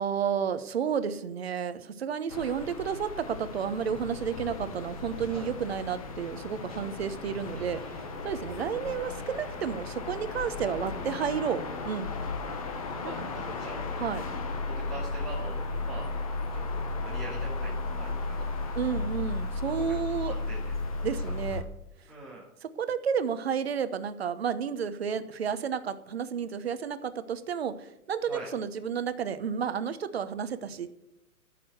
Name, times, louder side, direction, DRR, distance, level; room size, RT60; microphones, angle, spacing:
voice 1, 0.0-7.8 8.2-12.1 13.2-13.3 14.0-14.2 18.7-20.3 21.0-21.6 22.6-30.9, right 7 dB, 45° right, 12 dB, 1.0 m, -31 dB
sound 1, 2.3-21.6, left 3 dB, 25° left, 1.0 m, -35 dB
voice 2, 7.5-8.1 13.0-13.8 14.7-16.1 16.5-18.7 19.8-20.7 21.2-21.3 22.1-22.4 28.3-28.5, right 2 dB, ahead, -11 dB, 2.5 m, -44 dB
14.0 x 6.9 x 7.8 m, 0.86 s
hypercardioid pair, 170°, 44 cm